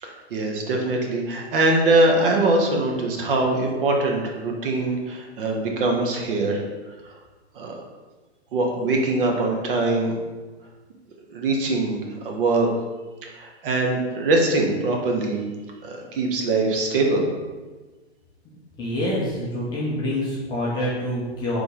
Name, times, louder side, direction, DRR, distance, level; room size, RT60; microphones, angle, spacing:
voice 1, 0.0-6.6 7.1-7.2 7.5-7.7 8.5-10.2 11.3-12.7 13.2-15.4 15.8-17.3, right 2 dB, 55° right, 1 dB, 0.9 m, -22 dB
voice 2, 18.8-21.6, left 1 dB, 15° left, -5 dB, 0.4 m, -26 dB
3.9 x 3.3 x 3.5 m, 1.3 s
hypercardioid pair, 130°, 34 cm